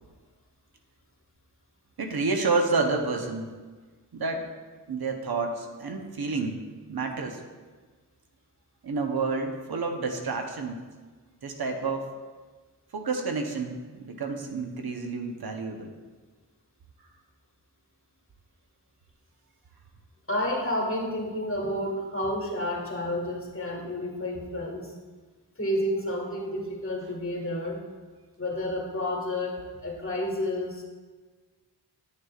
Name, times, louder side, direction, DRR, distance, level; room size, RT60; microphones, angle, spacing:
voice 1, 2.0-3.5 4.1-4.5 4.9-6.6 6.9-7.4 8.8-10.8 11.4-12.1 12.9-15.9, right 3 dB, 70° right, 3 dB, 0.9 m, -29 dB
voice 2, 20.3-24.9 25.6-27.8 28.4-30.8, left 1 dB, 35° left, -1 dB, 1.8 m, -30 dB
9.4 x 6.3 x 2.4 m, 1.4 s
cardioid pair, 50°, 39 cm